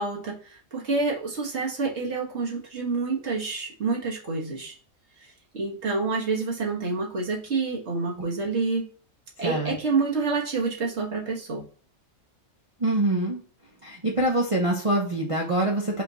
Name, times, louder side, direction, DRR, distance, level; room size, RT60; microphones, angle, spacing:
voice 1, 0.0-4.7 5.5-8.9 9.4-11.6, right 4 dB, 50° right, -1 dB, 1.6 m, -28 dB
voice 2, 9.4-9.8 12.8-13.4 13.8-16.0, right 1 dB, 30° right, -2 dB, 0.7 m, -25 dB
5.1 x 2.5 x 4.0 m, 0.42 s
omnidirectional pair, 1.5 m